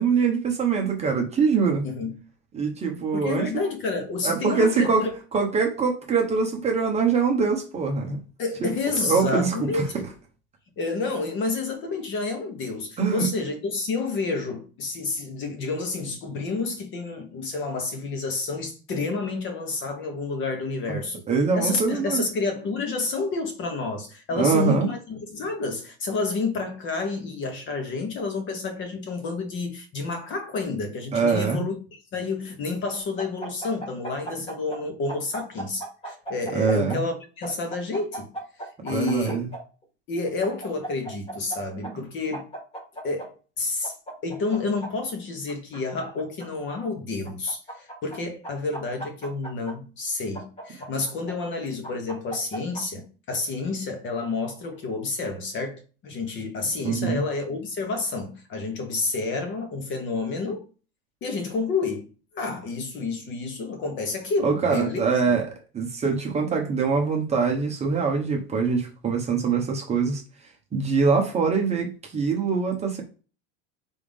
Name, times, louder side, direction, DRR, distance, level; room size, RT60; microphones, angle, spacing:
voice 1, 0.0-1.8 2.5-3.6 4.2-5.1 5.3-8.2 8.6-8.7 9.0-9.8 13.0-13.3 21.3-22.2 24.3-24.9 31.1-31.6 36.5-37.0 38.9-39.5 41.9-42.0 56.8-57.2 64.4-65.5 65.7-70.2 70.7-73.0, right 5 dB, 20° right, 0.9 m, -23 dB
voice 2, 1.8-2.2 3.1-5.2 8.4-10.1 10.8-21.2 21.5-38.3 38.6-39.4 40.1-42.5 43.0-43.9 44.2-60.6 61.2-65.0, left 3 dB, 35° left, 1.3 m, -29 dB
sound 1, 33.2-34.8 35.1-37.0 37.4-39.6 40.4-41.6 41.8-41.9 42.3-43.3 43.8-44.9 45.5-46.5 47.2-48.2 48.4-49.7 50.3-51.3 51.8-52.8, right 2 dB, 15° left, 1.6 m, -36 dB
3.9 x 3.5 x 3.5 m
supercardioid pair, 140°, 34 cm